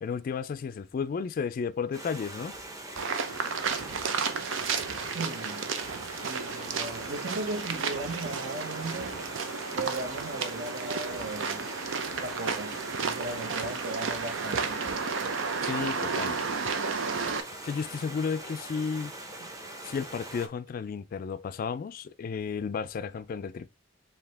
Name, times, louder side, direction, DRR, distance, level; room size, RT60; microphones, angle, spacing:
voice 1, 0.0-2.5 15.6-16.4 17.6-19.1 19.8-23.7, left 6 dB, 45° left, 0.3 m, -33 dB
Stream, 1.9-20.5, right 1 dB, 20° right, 0.8 m, -42 dB
sound 1, 3.0-17.4, right 5 dB, 85° right, 0.6 m, -32 dB
voice 2, 5.0-5.6 6.2-9.2 9.7-11.7 12.2-12.7 13.0-14.8, right 2 dB, 60° right, 1.0 m, -37 dB
4.8 x 2.7 x 3.4 m
head